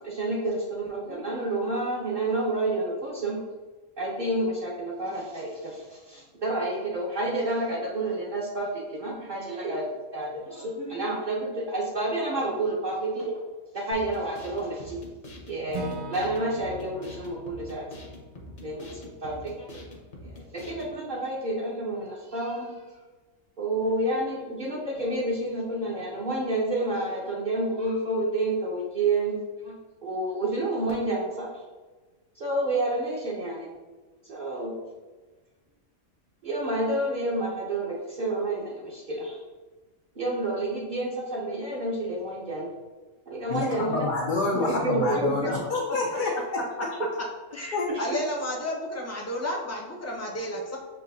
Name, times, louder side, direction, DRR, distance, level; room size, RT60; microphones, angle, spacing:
voice 1, 0.0-3.4 4.0-9.9 10.1-13.4 13.7-15.0 15.5-17.9 18.6-19.8 20.2-22.7 23.6-29.8 30.0-31.5 32.4-33.7 34.3-34.7 36.4-39.4 40.1-42.7 43.3-44.0 44.5-45.5 47.9-48.2, right 2 dB, 45° right, -6 dB, 0.9 m, -29 dB
sound 1, 13.9-20.9, left 1 dB, 40° left, 0.9 m, -45 dB
Acoustic guitar / Strum, 15.7-19.8, right 2 dB, 90° right, 0.3 m, -42 dB
voice 2, 43.5-46.6 47.7-47.9, left 3 dB, 55° left, -2 dB, 0.6 m, -28 dB
voice 3, 45.0-45.6 47.5-50.8, left 1 dB, 15° left, -2 dB, 0.6 m, -31 dB
7.1 x 2.7 x 2.6 m, 1.3 s
omnidirectional pair, 1.3 m